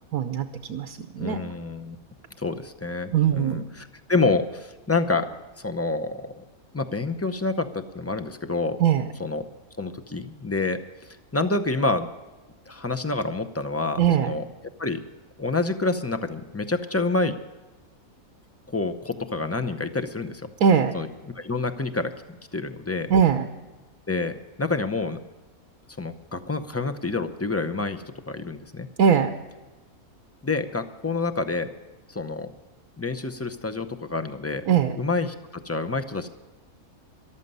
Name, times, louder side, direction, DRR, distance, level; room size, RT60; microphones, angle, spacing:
voice 1, 0.1-1.4 3.1-3.6 8.8-9.1 14.0-14.3 20.6-20.9 23.1-23.5 29.0-29.4 34.7-35.0, right 7 dB, 85° right, 7 dB, 1.3 m, -21 dB
voice 2, 1.2-2.0 2.4-5.3 5.6-6.4 6.7-8.8 9.2-9.4 9.8-10.8 11.3-12.1 12.7-14.4 14.8-15.0 15.4-17.3 18.7-20.5 20.9-21.1 21.3-22.1 22.5-23.1 24.1-25.2 26.0-28.9 30.4-31.7 32.1-32.5 33.0-34.6 35.0-36.3, left 3 dB, 20° left, 7 dB, 0.3 m, -28 dB
14.0 x 12.5 x 5.4 m, 1.2 s
omnidirectional pair, 1.5 m